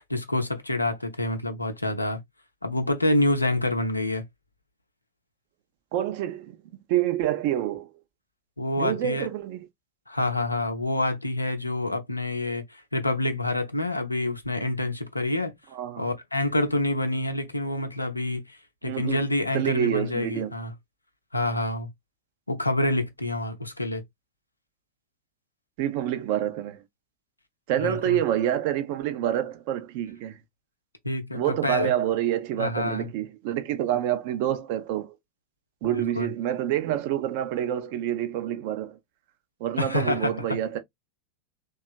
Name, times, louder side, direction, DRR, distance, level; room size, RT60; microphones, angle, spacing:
voice 1, 0.0-2.2 2.6-4.2 8.6-9.3 10.1-15.5 16.0-20.7 21.3-21.9 22.5-24.0 27.8-28.2 31.0-31.9 32.6-33.1 35.8-36.3 39.8-40.6, left 1 dB, 85° left, 0.5 m, -27 dB
voice 2, 5.9-6.6 6.9-7.9 8.8-9.7 15.7-16.1 18.8-19.2 19.5-20.5 25.8-26.8 27.7-30.4 31.3-35.1 35.8-39.0 39.6-40.8, right 11 dB, 45° right, 0.5 m, -27 dB
2.8 x 2.3 x 2.3 m
figure-of-eight pair, 90°, 0 cm